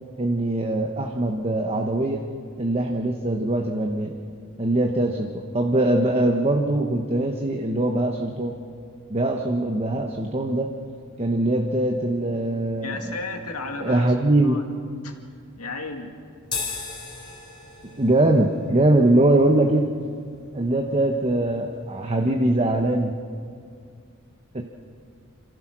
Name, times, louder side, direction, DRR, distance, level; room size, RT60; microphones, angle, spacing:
voice 1, 0.2-2.2 2.6-4.1 4.6-8.5 9.1-10.7 11.2-13.2 13.8-14.6 17.9-19.9 20.5-23.1 24.5-24.6, right 1 dB, 25° right, 3 dB, 1.0 m, -22 dB
voice 2, 12.8-14.1 14.4-14.6 15.0-15.1 15.6-16.1, left 3 dB, 85° left, 3 dB, 2.2 m, -33 dB
sound 1, 16.4-23.0, left 4 dB, 20° left, 4.0 m, -39 dB
27.0 x 15.5 x 6.2 m, 2.2 s
head